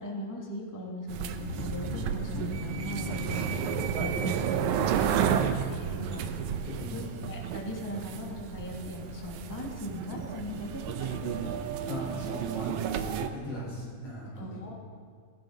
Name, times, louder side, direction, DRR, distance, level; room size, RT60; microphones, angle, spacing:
voice 1, 0.0-6.4 6.9-10.9 11.2-11.5 14.4-14.7, left 1 dB, 10° left, -1 dB, 1.5 m, -39 dB
sound 1, 1.1-13.3, right 8 dB, 80° right, 2.1 m, -32 dB
sound 2, 1.4-6.2, left 2 dB, 70° left, 2.7 m, -41 dB
voice 2, 6.7-7.2 11.9-14.7, left 1 dB, 50° left, -5 dB, 5.3 m, -39 dB
17.0 x 16.5 x 4.0 m, 2.1 s
omnidirectional pair, 3.4 m